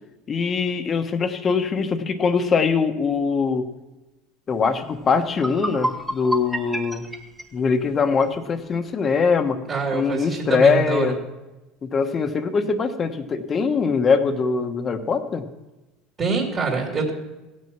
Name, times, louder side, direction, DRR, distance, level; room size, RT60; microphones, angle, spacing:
voice 1, 0.3-3.7 4.5-7.1 7.5-9.6 9.9-11.2 11.8-15.4, left 5 dB, 35° left, 7 dB, 1.2 m, -22 dB
sound 1, 4.8-4.9 5.3-8.4, right 1 dB, 10° right, 1.2 m, -30 dB
voice 2, 9.7-11.1 16.2-17.1, right 4 dB, 35° right, -3 dB, 2.7 m, -25 dB
16.0 x 6.4 x 6.0 m, 1.1 s
supercardioid pair, 100°, 0 cm